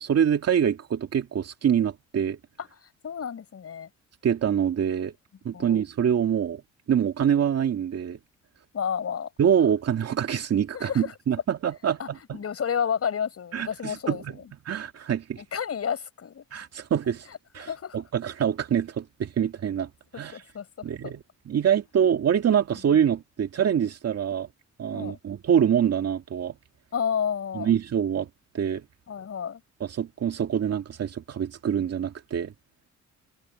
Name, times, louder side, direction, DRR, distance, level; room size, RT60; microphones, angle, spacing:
voice 1, 0.0-2.4 4.2-5.1 5.4-6.6 6.9-8.2 9.4-12.4 13.5-14.3 14.7-15.4 16.5-17.3 17.5-17.7 17.9-19.9 20.2-20.4 20.8-24.5 24.8-26.5 27.5-28.3 28.5-28.8 29.8-32.5, right 8 dB, 55° right, 2.2 m, -25 dB
voice 2, 2.6-3.9 5.5-5.8 8.7-9.3 10.7-11.1 11.9-14.5 15.4-16.4 17.3-18.0 20.3-20.7 21.0-21.1 24.9-25.2 26.9-27.7 29.1-29.6, left 7 dB, 50° left, 7.1 m, -31 dB
cardioid pair, 90°, 30 cm